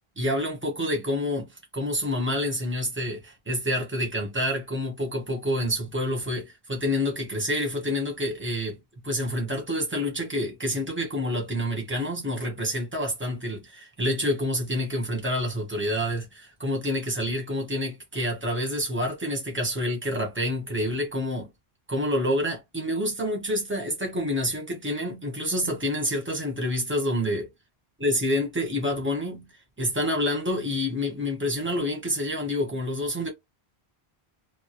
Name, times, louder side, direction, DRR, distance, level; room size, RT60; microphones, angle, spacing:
voice 1, 0.2-1.5 1.7-8.8 9.0-21.5 21.9-27.5 28.0-29.5 29.8-33.3, left 1 dB, 10° right, 0.9 m, -28 dB
2.2 x 2.0 x 2.9 m
omnidirectional pair, 1.1 m